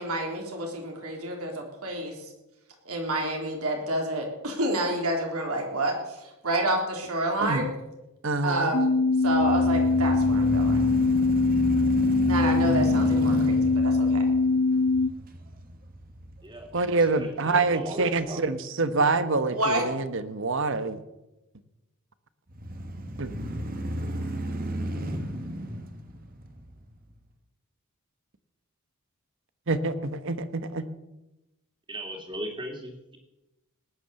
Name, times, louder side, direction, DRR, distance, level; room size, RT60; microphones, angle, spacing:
voice 1, 0.0-2.2 2.9-7.7 8.4-8.9 9.2-10.8 12.3-14.3 19.5-19.8, right 1 dB, 75° right, 1 dB, 3.7 m, -29 dB
voice 2, 8.2-8.7 16.7-21.0 23.2-23.3 29.7-30.9, right 3 dB, 60° right, 12 dB, 1.1 m, -26 dB
sound 1, 8.7-15.1, left 3 dB, 50° left, 0.8 m, -22 dB
sound 2, 9.2-17.4 17.9-18.0 22.5-27.0, equal, 40° right, 1.5 m, -33 dB
voice 3, 16.9-18.4 31.9-33.2, right 1 dB, 20° right, 3 dB, 2.9 m, -38 dB
19.0 x 9.6 x 7.0 m, 0.97 s
head